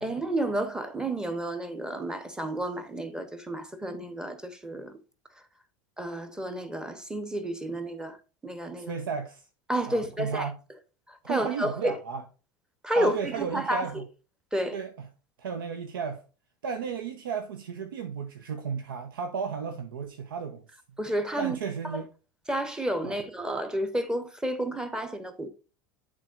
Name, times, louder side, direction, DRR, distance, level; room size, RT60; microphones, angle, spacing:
voice 1, 0.0-5.0 6.0-8.2 8.4-8.9 9.7-10.5 11.1-12.0 12.8-13.9 14.5-14.8 21.0-21.6 21.8-22.0 22.5-25.5, right 1 dB, 5° right, 1.0 m, -31 dB
voice 2, 8.8-9.5 9.9-10.6 11.3-12.2 12.9-14.1 14.7-15.1 15.4-16.2 16.6-20.6 21.4-22.1 23.0-23.2, right 6 dB, 70° right, 0.7 m, -34 dB
11.0 x 3.7 x 2.5 m
figure-of-eight pair, 80°, 12 cm